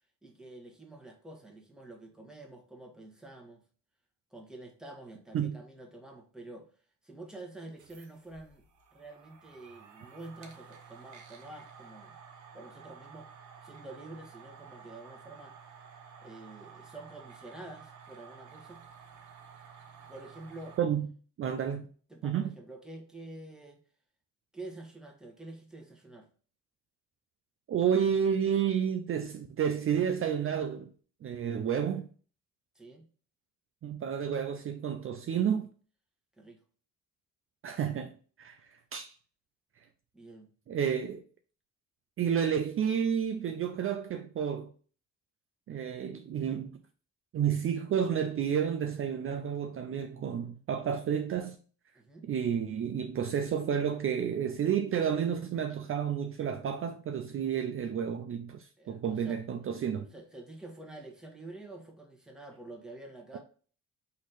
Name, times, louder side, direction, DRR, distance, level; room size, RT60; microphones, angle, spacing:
voice 1, 0.2-3.6 4.3-6.7 7.0-8.6 8.9-12.2 12.5-13.3 13.6-15.6 16.2-18.8 20.1-20.8 22.1-23.8 24.5-26.3 32.7-33.1 36.4-36.6 40.1-40.5 51.9-52.3 58.8-59.4 60.1-63.4, right 2 dB, ahead, 1.4 m, -48 dB
sound 1, 7.6-20.8, right 6 dB, 75° right, 1.0 m, -52 dB
voice 2, 21.4-21.9 22.2-22.5 27.7-30.9 31.2-32.1 33.8-35.7 37.6-38.1 38.4-39.1 40.7-41.2 42.2-44.7 45.7-46.8 47.3-51.6 52.2-60.1, right 8 dB, 45° right, 0.5 m, -30 dB
4.2 x 3.1 x 4.1 m
cardioid pair, 90°, 30 cm